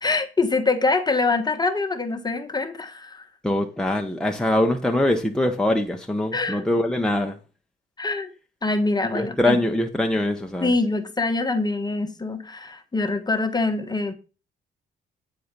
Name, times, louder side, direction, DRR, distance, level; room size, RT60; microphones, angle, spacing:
voice 1, 0.0-3.2 6.3-6.7 8.0-8.3 8.6-9.6 10.6-14.1, left 3 dB, 20° left, 1.3 m, -24 dB
voice 2, 3.4-7.4 9.1-10.7, left 1 dB, 5° left, 1.1 m, -23 dB
9.3 x 4.4 x 5.2 m
cardioid pair, 90°, 20 cm